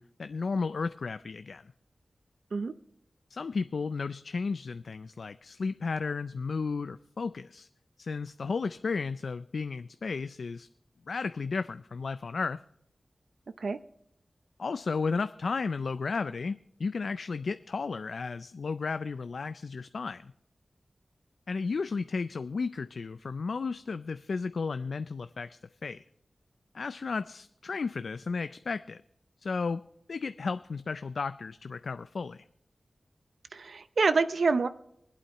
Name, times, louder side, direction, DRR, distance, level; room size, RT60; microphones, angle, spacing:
voice 1, 0.0-1.7 3.3-7.7 8.0-10.7 11.1-12.6 14.6-20.3 21.5-26.0 26.7-29.0 29.4-29.8 30.1-32.5, left 4 dB, 80° left, 12 dB, 0.3 m, -33 dB
voice 2, 33.5-34.7, right 4 dB, 80° right, 12 dB, 0.6 m, -27 dB
25.0 x 8.5 x 3.0 m, 0.75 s
wide cardioid pair, 75°, 0 cm